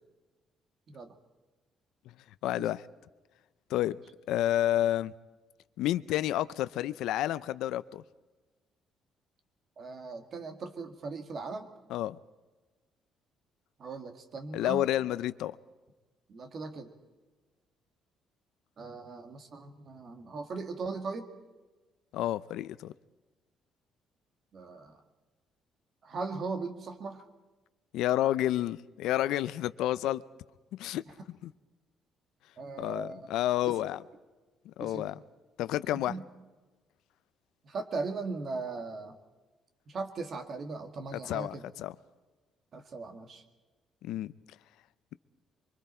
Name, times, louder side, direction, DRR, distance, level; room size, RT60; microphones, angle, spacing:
voice 1, 2.4-2.8 3.7-4.0 4.3-5.1 5.8-8.0 11.9-12.2 14.5-15.6 22.1-22.9 27.9-30.2 30.7-31.0 31.4-31.5 32.8-34.0 34.7-35.2 35.6-36.1 41.1-41.9 44.0-44.3, left 13 dB, 85° left, 0.5 m, -30 dB
voice 2, 9.8-11.7 13.8-14.9 16.3-16.9 18.8-21.3 24.5-25.0 26.0-27.2 32.6-33.2 33.7-33.9 34.8-35.1 36.1-36.2 37.6-39.1 39.9-41.6 42.7-43.4, right 4 dB, 40° right, 1.9 m, -38 dB
24.5 x 24.0 x 4.4 m
cardioid pair, 155°, 0 cm